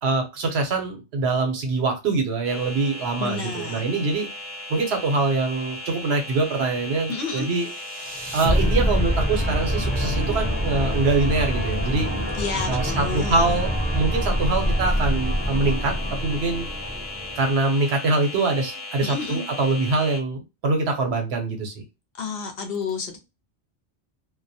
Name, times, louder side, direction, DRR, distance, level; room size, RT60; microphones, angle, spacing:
voice 1, 0.0-4.3 4.7-7.7 8.3-12.1 12.7-15.9 16.2-16.7 17.4-21.8, right 3 dB, 70° right, 4 dB, 0.9 m, -24 dB
sound 1, 2.4-20.2, left 2 dB, 15° left, 0.7 m, -37 dB
voice 2, 3.2-3.8 7.1-7.5 12.4-13.5 19.0-19.4 22.1-23.2, left 4 dB, 65° left, 5 dB, 0.8 m, -30 dB
sound 2, 7.5-17.7, equal, 10° right, 0.4 m, -25 dB
2.2 x 2.1 x 2.6 m, 0.25 s
omnidirectional pair, 1.1 m